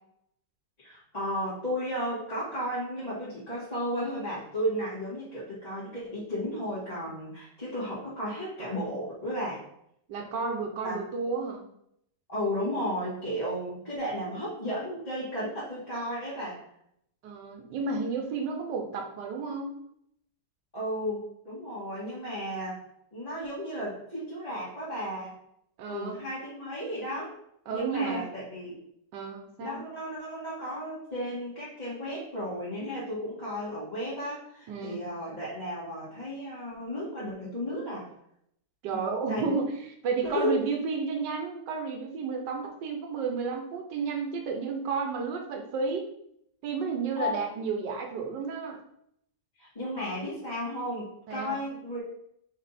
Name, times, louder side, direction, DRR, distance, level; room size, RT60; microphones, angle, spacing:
voice 1, 0.8-9.6 10.8-11.0 12.3-16.6 20.7-22.8 23.1-25.3 25.9-27.3 27.7-28.8 29.6-38.1 38.9-39.5 40.2-40.6 47.1-47.4 49.6-52.0, equal, 20° left, -11 dB, 2.3 m, -34 dB
voice 2, 10.1-11.6 17.2-19.8 25.8-26.2 27.7-28.2 29.1-29.8 34.7-35.0 38.8-39.7 40.0-46.1 46.6-48.8 51.3-51.6, right 5 dB, 80° right, 3 dB, 1.5 m, -32 dB
6.1 x 3.7 x 4.2 m, 0.73 s
omnidirectional pair, 1.9 m